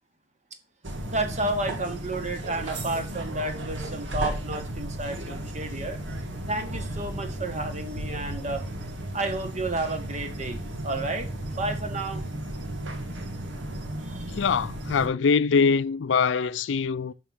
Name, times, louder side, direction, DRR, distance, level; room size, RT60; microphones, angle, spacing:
sound 1, 0.8-15.1, right 1 dB, 85° right, 1.6 m, -34 dB
voice 1, 1.0-6.0 6.5-8.6 9.1-12.2 14.0-14.3, right 2 dB, 40° right, 1.6 m, -31 dB
voice 2, 14.3-17.1, left 5 dB, 85° left, 0.4 m, -23 dB
6.8 x 5.6 x 6.4 m
head